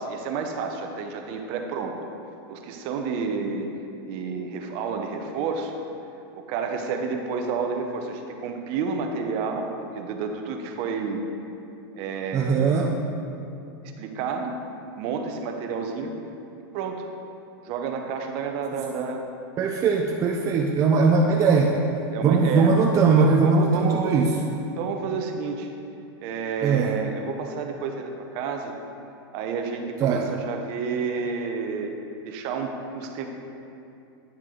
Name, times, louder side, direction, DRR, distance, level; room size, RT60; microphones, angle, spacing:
voice 1, 0.0-1.9 2.5-3.7 4.1-5.7 6.3-11.2 11.9-13.0 14.0-14.5 15.0-16.1 16.7-17.1 17.6-19.3 22.1-22.7 23.2-24.2 24.8-25.7 26.2-28.7 29.3-31.9 32.2-33.3, right 5 dB, 45° right, 4 dB, 0.8 m, -30 dB
voice 2, 12.3-12.9 19.6-21.8 22.2-24.3 26.6-27.0 30.0-30.3, right 4 dB, 25° right, 1 dB, 0.4 m, -20 dB
9.5 x 4.6 x 3.8 m, 2.7 s
supercardioid pair, 135°, 12 cm